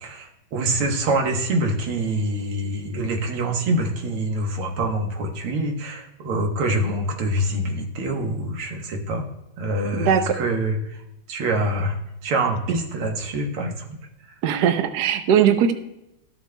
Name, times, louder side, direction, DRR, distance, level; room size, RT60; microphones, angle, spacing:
voice 1, 0.0-9.3 9.6-11.0 11.3-12.0 12.2-14.0, right 1 dB, 90° right, 2 dB, 2.2 m, -25 dB
voice 2, 10.0-10.4 12.7-12.8 14.4-15.7, right 8 dB, 60° right, 8 dB, 1.1 m, -19 dB
13.5 x 7.2 x 2.2 m, 0.89 s
omnidirectional pair, 2.3 m